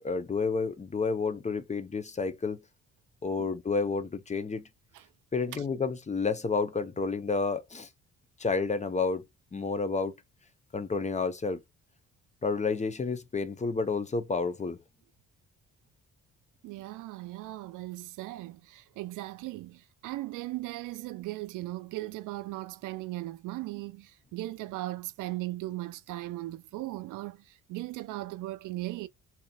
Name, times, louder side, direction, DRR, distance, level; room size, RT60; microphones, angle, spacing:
voice 1, 0.0-2.6 3.2-4.7 5.3-7.9 8.4-9.2 9.5-10.1 10.7-11.6 12.4-14.8, left 4 dB, 25° left, 0.7 m, -30 dB
voice 2, 16.6-29.1, right 17 dB, 85° right, 0.5 m, -38 dB
3.9 x 2.8 x 2.3 m
cardioid pair, 90°, 30 cm